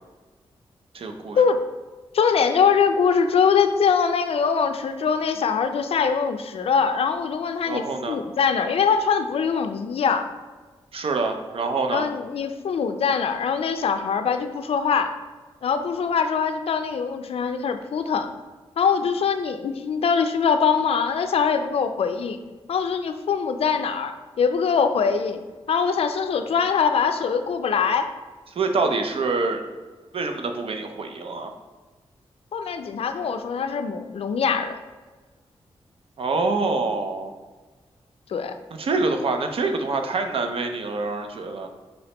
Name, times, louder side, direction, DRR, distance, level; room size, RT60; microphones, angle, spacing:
voice 1, 0.9-1.4 7.7-8.2 10.9-12.0 28.6-29.6 30.1-31.5 36.2-37.3 38.8-41.7, right 3 dB, 65° right, 5 dB, 0.5 m, -25 dB
voice 2, 2.1-10.3 11.9-15.1 15.6-18.3 18.8-22.4 22.7-25.4 25.7-28.1 32.5-34.8 38.3-38.5, left 6 dB, 70° left, 8 dB, 0.4 m, -23 dB
5.3 x 3.1 x 2.9 m, 1.3 s
cardioid pair, 80°, 10 cm